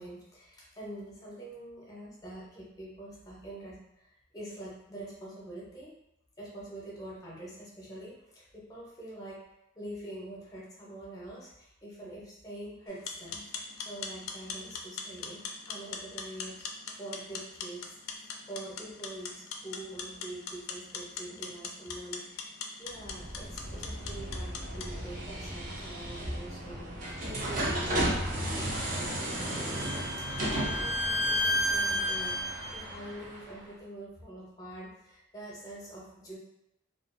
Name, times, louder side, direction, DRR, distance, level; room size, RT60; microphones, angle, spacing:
voice 1, 0.0-5.9 6.4-9.4 9.7-16.6 17.0-18.0 18.5-29.6 30.5-36.4, right 1 dB, 20° left, -5 dB, 0.6 m, -45 dB
sound 1, 12.9-24.9, left 5 dB, 85° left, 0.3 m, -42 dB
sound 2, 22.9-33.7, right 1 dB, 40° right, 0.4 m, -35 dB
Bowed string instrument, 29.0-32.8, left 1 dB, 70° right, 1.1 m, -31 dB
2.3 x 2.3 x 2.4 m, 0.83 s
head